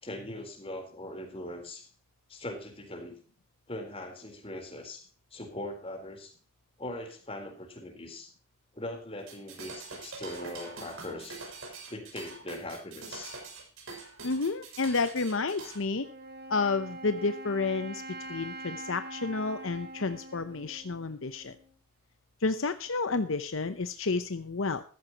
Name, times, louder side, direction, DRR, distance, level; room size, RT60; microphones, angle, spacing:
voice 1, 0.0-1.9 2.3-3.2 3.7-6.3 6.8-8.3 8.7-11.4 11.9-13.4, left 1 dB, 25° left, 5 dB, 4.0 m, -41 dB
sound 1, 9.2-15.8, right 3 dB, 65° right, 6.7 m, -44 dB
voice 2, 14.2-16.1 16.5-18.0 18.3-21.6 22.4-24.8, left 3 dB, 65° left, 11 dB, 0.8 m, -30 dB
Wind instrument woodwind instrument, 16.0-21.7, right 1 dB, 50° right, 3.4 m, -44 dB
14.5 x 14.0 x 3.0 m, 0.39 s
head